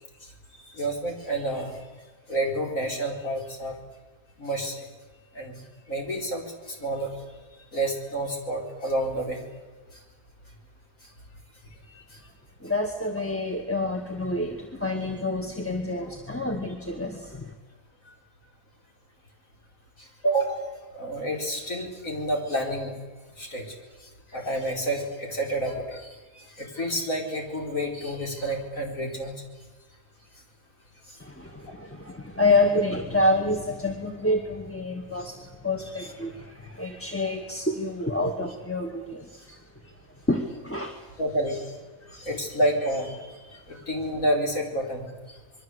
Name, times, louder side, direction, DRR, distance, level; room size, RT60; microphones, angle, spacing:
voice 1, 0.6-1.8 2.3-3.7 4.4-4.9 5.3-5.6 5.9-7.1 7.7-9.4 12.1-12.2 18.1-18.2 20.0-20.7 20.9-22.9 23.4-23.8 24.0-29.4 31.1-31.2 35.2-35.3 36.0-36.1 41.2-41.6 42.1-45.4, right 1 dB, 70° left, 1 dB, 4.9 m, -29 dB
voice 2, 12.6-17.5 31.2-39.5 40.3-41.0 42.1-42.2, left 2 dB, 10° left, 2 dB, 1.9 m, -28 dB
26.5 x 22.0 x 8.1 m, 1.3 s
omnidirectional pair, 1.5 m